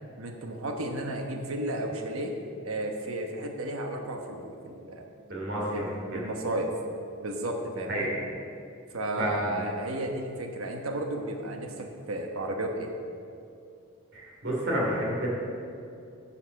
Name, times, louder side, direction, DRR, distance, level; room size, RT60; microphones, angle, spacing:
voice 1, 0.2-2.3 2.6-5.1 5.7-6.7 7.2-8.1 8.9-12.9, right 1 dB, 80° right, 3 dB, 1.1 m, -33 dB
voice 2, 5.3-5.8 6.1-6.2 7.9-8.1 9.2-9.6 14.1-15.3, right 1 dB, 55° right, -3 dB, 2.8 m, -29 dB
10.0 x 5.7 x 7.1 m, 2.5 s
head